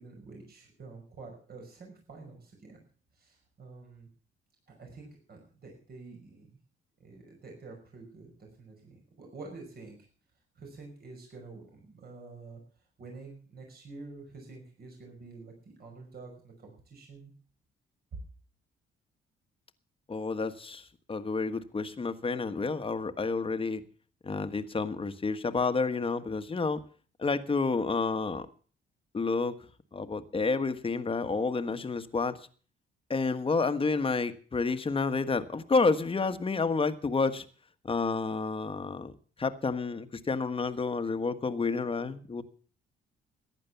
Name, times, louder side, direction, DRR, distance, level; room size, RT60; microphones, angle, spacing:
voice 1, 0.0-2.8 3.2-4.1 4.7-6.5 7.0-10.0 10.6-12.6 13.0-17.3 18.1-18.2, right 3 dB, 50° right, 1 dB, 5.6 m, -48 dB
voice 2, 20.1-23.8 24.2-26.8 27.2-28.5 29.1-29.5 29.9-32.4 33.1-37.4 37.8-39.1 39.4-42.4, left 4 dB, 25° left, 9 dB, 1.4 m, -30 dB
15.0 x 10.5 x 7.0 m, 0.42 s
cardioid pair, 90°, 20 cm